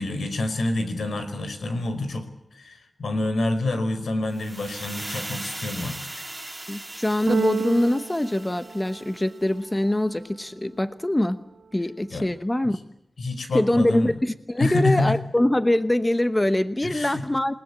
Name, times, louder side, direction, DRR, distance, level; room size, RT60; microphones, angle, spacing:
voice 1, 0.0-2.3 2.5-6.2 12.1-12.2 13.2-14.1 14.6-15.2 16.8-17.2, left 2 dB, 80° left, 8 dB, 4.9 m, -27 dB
sound 1, 4.3-9.4, right 1 dB, 15° right, 2.3 m, -38 dB
voice 2, 6.7-11.4 11.7-12.8 13.5-17.5, left 1 dB, 15° left, 10 dB, 1.0 m, -23 dB
Keyboard (musical), 7.3-9.4, right 5 dB, 75° right, 0.9 m, -29 dB
28.5 x 20.0 x 8.7 m, 0.84 s
wide cardioid pair, 120°, 0 cm